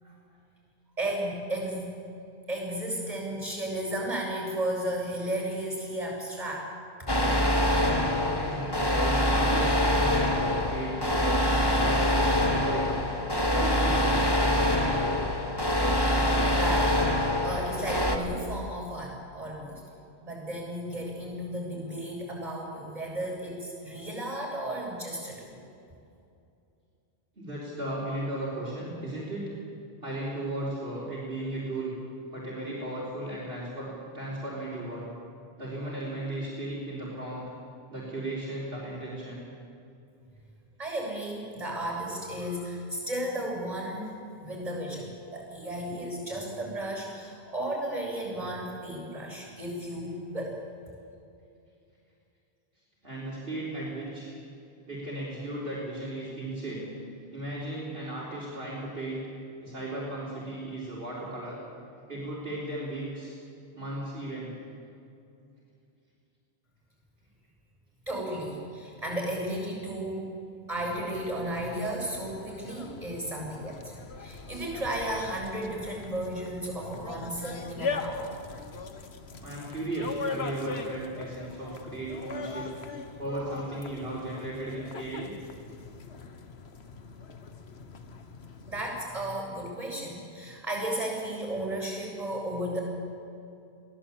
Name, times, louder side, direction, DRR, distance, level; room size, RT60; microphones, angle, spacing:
voice 1, 1.0-1.9 2.5-6.7 7.0-7.1 16.0-16.2 16.5-19.8 20.2-25.6 40.8-44.1 44.4-50.6 68.1-70.3 70.7-73.9 74.2-78.3 88.7-92.8, right 1 dB, 35° right, 0 dB, 7.6 m, -34 dB
sound 1, 7.1-18.2, left 1 dB, 20° left, 1.8 m, -25 dB
voice 2, 7.6-11.4 11.8-13.1 13.5-15.4 27.4-29.4 30.0-31.9 32.3-35.1 35.6-37.4 37.9-39.4 53.0-54.3 54.9-56.9 57.3-59.3 59.6-61.6 62.1-63.4 63.7-64.5 79.4-82.7 83.2-85.3, right 1 dB, 60° right, -7 dB, 4.3 m, -35 dB
sound 2, 70.7-89.0, left 4 dB, 75° left, 1.5 m, -41 dB
22.5 x 16.5 x 8.6 m, 2.6 s
omnidirectional pair, 1.1 m